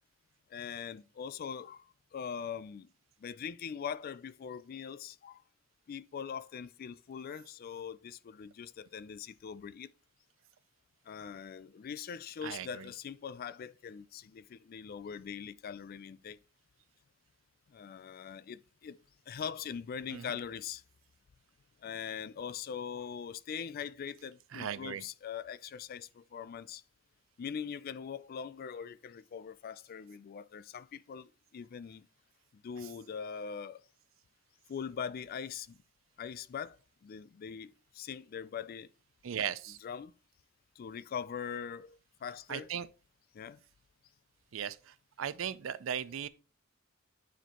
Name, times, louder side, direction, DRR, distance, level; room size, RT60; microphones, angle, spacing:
voice 1, 0.5-1.9 2.1-2.9 3.2-5.4 5.9-9.9 11.1-16.4 17.7-19.0 19.3-20.8 21.8-26.8 27.4-32.0 32.6-33.8 34.7-35.8 36.2-36.8 37.0-38.9 39.8-40.1 40.8-42.7 43.3-43.6, left 7 dB, 50° left, 0.3 m, -42 dB
voice 2, 12.4-12.9 20.1-20.3 24.5-25.0 39.2-39.8 42.5-42.9 44.5-46.3, right 8 dB, 75° right, 0.4 m, -37 dB
9.2 x 4.3 x 2.9 m
head